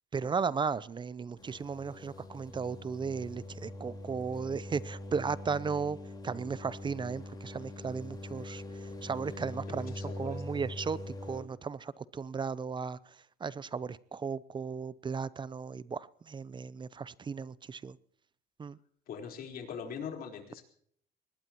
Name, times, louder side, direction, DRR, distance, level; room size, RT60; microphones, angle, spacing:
voice 1, 0.1-6.0 6.2-8.6 9.0-13.0 13.4-18.0 18.6-18.8, right 5 dB, 30° right, 19 dB, 0.6 m, -35 dB
sound 1, 1.4-11.4, left 1 dB, 25° left, 4.3 m, -43 dB
voice 2, 9.7-10.6 19.1-20.6, left 7 dB, 60° left, 3 dB, 4.2 m, -42 dB
24.0 x 20.0 x 3.0 m, 0.64 s
cardioid pair, 110°, 17 cm